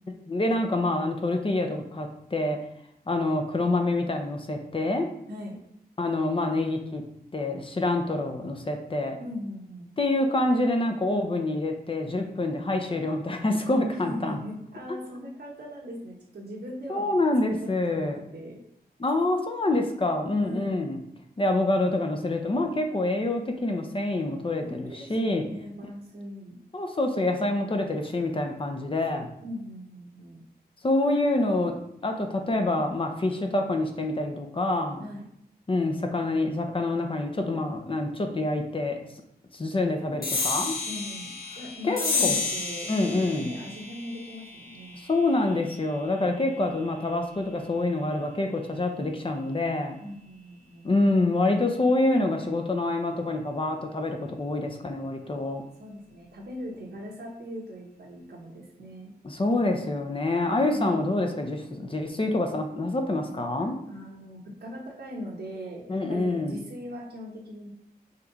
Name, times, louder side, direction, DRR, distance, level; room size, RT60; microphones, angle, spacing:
voice 1, 0.3-2.6 3.1-5.1 6.0-7.0 7.3-9.2 10.0-14.4 16.9-18.2 19.0-21.0 21.4-25.4 26.7-29.3 30.8-35.0 35.7-39.0 39.5-40.8 41.8-42.4 42.9-43.5 45.1-50.0 50.8-55.6 59.2-63.7 65.9-66.6, left 2 dB, 30° left, 4 dB, 0.9 m, -26 dB
voice 2, 5.3-5.6 9.2-9.9 13.9-17.1 17.8-18.6 20.4-21.0 24.6-26.6 29.4-30.4 35.0-35.2 36.4-36.6 40.8-45.0 50.0-50.9 55.2-59.1 60.7-61.1 63.9-65.8 66.1-67.7, equal, 85° right, -3 dB, 1.3 m, -40 dB
sound 1, 40.2-47.1, left 4 dB, 65° left, 1.4 m, -32 dB
5.4 x 4.9 x 4.1 m, 0.77 s
wide cardioid pair, 120°, 17 cm